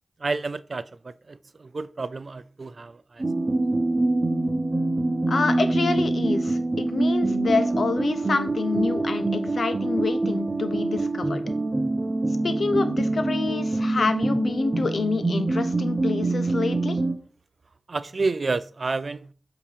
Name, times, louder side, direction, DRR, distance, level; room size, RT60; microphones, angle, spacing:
voice 1, 0.2-3.2 17.9-19.3, right 3 dB, 55° right, 0.4 m, -30 dB
sound 1, 3.2-17.2, right 2 dB, 35° right, 0.9 m, -25 dB
voice 2, 5.3-11.4 12.4-17.0, left 4 dB, 70° left, 0.8 m, -27 dB
8.3 x 3.0 x 4.9 m
cardioid pair, 50°, 0 cm